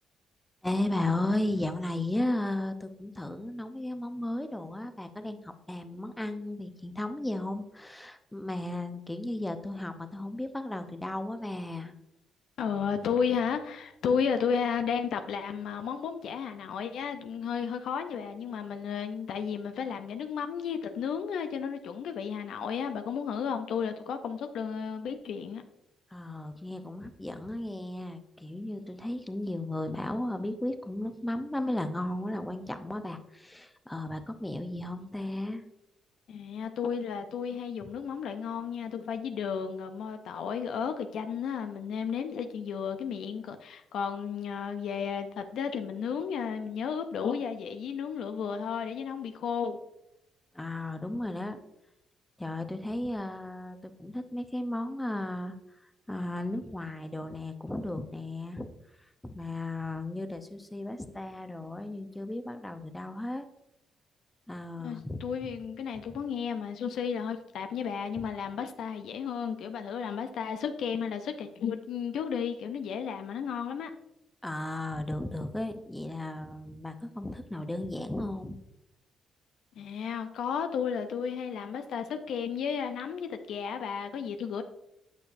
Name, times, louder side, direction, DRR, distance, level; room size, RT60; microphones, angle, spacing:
voice 1, 0.6-11.9 26.1-35.6 50.5-51.6 52.4-55.6 55.8-58.7 59.2-63.5 64.5-65.2 66.1-66.2 68.2-68.3 74.4-78.6, left 1 dB, 10° left, 8 dB, 0.7 m, -35 dB
voice 2, 12.6-25.6 36.3-49.8 64.8-73.9 79.8-84.6, left 7 dB, 75° left, 7 dB, 0.5 m, -33 dB
8.2 x 6.6 x 2.6 m, 0.86 s
cardioid pair, 90°, 0 cm